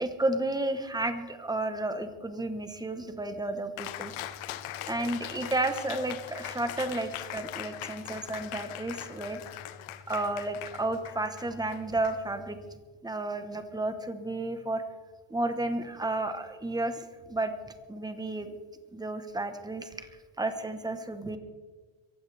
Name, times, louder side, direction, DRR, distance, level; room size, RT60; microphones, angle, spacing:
voice 1, 0.0-4.1 4.9-9.4 10.1-12.6 13.0-14.8 15.3-17.5 17.9-18.5 18.9-20.1 20.4-21.4, right 2 dB, 10° right, 8 dB, 1.1 m, -32 dB
Cheering, 3.8-12.7, left 12 dB, 80° left, 1.1 m, -41 dB
22.5 x 15.5 x 3.4 m, 1.4 s
cardioid pair, 145°, 49 cm